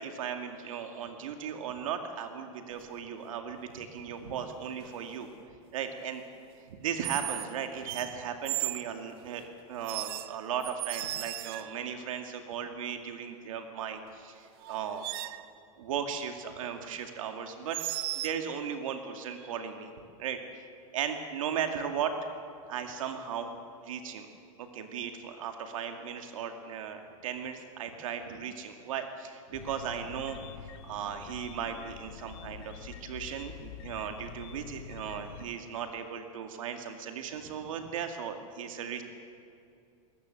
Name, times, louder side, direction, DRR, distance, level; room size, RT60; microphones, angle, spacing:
voice 1, 0.0-5.3 5.7-6.2 6.7-15.1 15.8-17.8 18.2-19.9 20.2-20.6 20.9-22.1 22.7-23.5 23.8-24.3 24.6-39.0, right 8 dB, 75° right, 5 dB, 2.3 m, -37 dB
sound 1, 2.7-3.0 4.8-5.1 7.0-7.5 7.8-8.9 9.8-11.9 14.1-14.2 14.6-15.5 17.7-18.4, right 16 dB, 45° right, 0.7 m, -36 dB
sound 2, 29.5-35.4, left 8 dB, 50° left, 1.2 m, -46 dB
21.0 x 20.5 x 7.8 m, 2.6 s
supercardioid pair, 175°, 17 cm